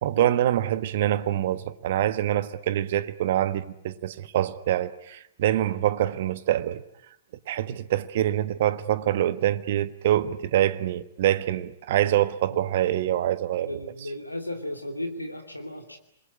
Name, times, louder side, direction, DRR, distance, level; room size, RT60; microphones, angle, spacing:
voice 1, 0.0-6.8 7.5-13.7, right 12 dB, 50° right, 1.3 m, -25 dB
voice 2, 13.7-16.0, left 1 dB, 90° left, 2.7 m, -35 dB
28.0 x 21.5 x 9.8 m
figure-of-eight pair, 110°, 0 cm